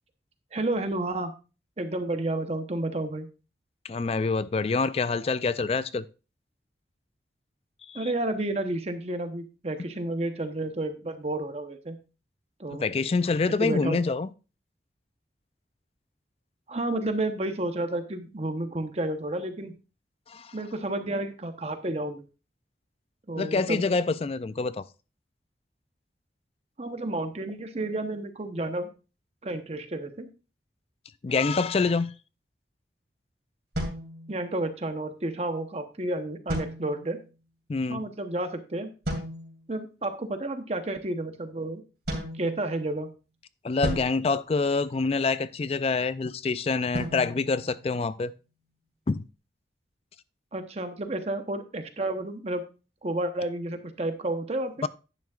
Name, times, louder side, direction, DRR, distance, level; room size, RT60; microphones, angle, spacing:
voice 1, 0.5-1.3 1.8-3.3 7.9-12.0 12.6-12.8 13.6-14.0 16.7-19.7 20.5-22.2 23.3-23.8 26.8-28.9 29.4-30.3 34.3-37.2 37.9-38.9 39.7-41.8 42.4-43.1 50.5-52.6 53.0-54.7, right 2 dB, 35° right, 0.9 m, -31 dB
voice 2, 3.8-6.1 7.9-8.1 12.7-14.3 20.3-20.5 23.4-24.8 31.2-32.1 37.7-38.1 43.6-48.3 49.1-49.2 54.8-54.9, left 4 dB, 35° left, 0.3 m, -26 dB
sound 1, 33.7-34.8 36.5-37.3 39.0-39.7 42.1-43.1 43.8-45.3 46.9-48.4, equal, 60° right, 2.6 m, -36 dB
10.5 x 9.3 x 2.4 m
head